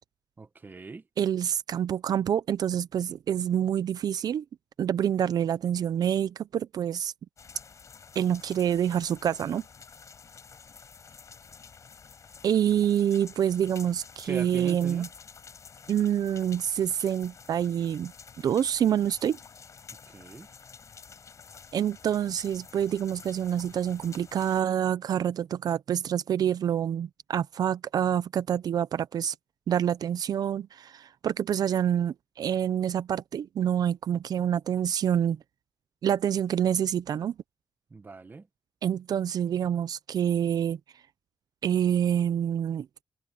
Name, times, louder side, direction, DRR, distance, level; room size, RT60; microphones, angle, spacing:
voice 1, 0.4-1.0 14.2-15.1 20.1-20.5 37.9-38.5, right 4 dB, 30° right, 1.3 m, -41 dB
voice 2, 1.2-4.4 4.8-7.1 8.2-9.6 12.4-15.1 15.9-18.1 18.4-19.4 21.7-29.3 29.7-35.4 36.0-37.3 38.8-40.8 41.6-42.9, right 9 dB, 75° right, 0.5 m, -27 dB
sound 1, 7.4-24.6, left 6 dB, 50° left, 5.3 m, -50 dB
wide cardioid pair, 130°, 7 cm